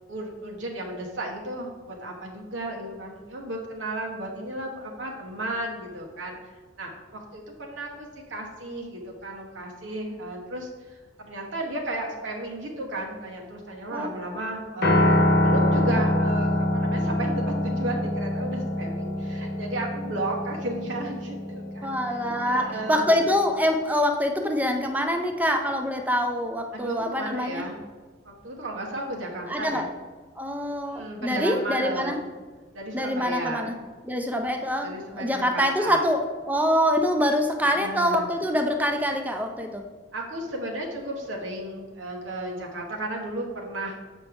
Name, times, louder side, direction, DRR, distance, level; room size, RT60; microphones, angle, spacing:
voice 1, 0.1-6.4 6.8-10.7 11.2-21.9 22.2-23.1 26.7-27.8 28.2-29.9 30.8-32.3 32.7-33.7 34.5-36.1 37.6-38.4 40.1-43.9, right 1 dB, 80° right, 0 dB, 1.2 m, -34 dB
Piano, 14.8-23.1, left 1 dB, 60° left, 0.9 m, -25 dB
voice 2, 21.8-27.7 29.5-29.9 30.4-32.2 32.9-33.7 34.0-39.9, equal, 10° right, 4 dB, 0.6 m, -25 dB
7.1 x 5.2 x 3.6 m, 1.4 s
head